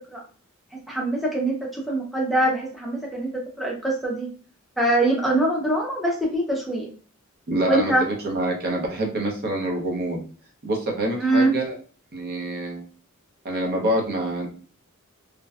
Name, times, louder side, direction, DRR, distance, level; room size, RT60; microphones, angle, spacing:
voice 1, 0.7-3.3 3.6-4.3 4.8-6.9 7.7-8.0 11.2-11.6, right 1 dB, ahead, -3 dB, 0.4 m, -23 dB
voice 2, 7.5-10.2 10.6-11.8 12.1-12.8 13.4-14.5, right 1 dB, 50° right, 1 dB, 0.6 m, -26 dB
2.5 x 2.1 x 2.3 m, 0.40 s
head